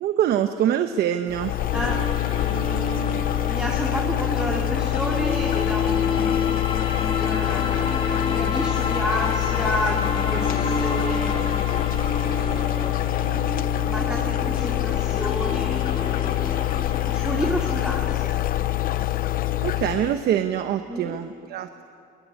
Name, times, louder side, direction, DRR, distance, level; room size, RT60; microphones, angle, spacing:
voice 1, 0.0-1.5 19.6-21.8, right 10 dB, 70° right, 8 dB, 1.0 m, -24 dB
sound 1, 1.3-20.2, left 14 dB, 60° left, 0.6 m, -25 dB
sound 2, 1.7-17.9, left 3 dB, 35° left, 5.4 m, -30 dB
voice 2, 1.7-2.0 2.4-6.3 7.1-11.7 12.2-13.4 13.8-16.7 17.0-18.4 20.9-21.1, right 1 dB, 5° right, -2 dB, 2.4 m, -31 dB
22.0 x 20.0 x 9.7 m, 2.4 s
cardioid pair, 110°, 17 cm